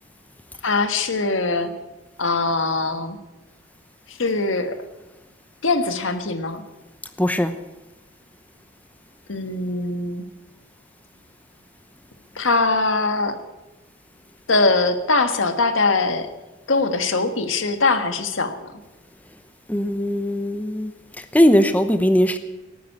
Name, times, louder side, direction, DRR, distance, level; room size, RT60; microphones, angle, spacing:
voice 1, 0.6-1.7 2.2-3.2 4.1-4.8 5.6-6.6 9.3-10.3 12.3-13.4 14.5-16.3 16.7-18.7, left 3 dB, 80° left, 9 dB, 1.5 m, -22 dB
voice 2, 7.2-7.5 19.7-20.9 21.3-22.4, equal, 10° left, 9 dB, 0.8 m, -19 dB
18.0 x 9.4 x 8.5 m, 1.1 s
head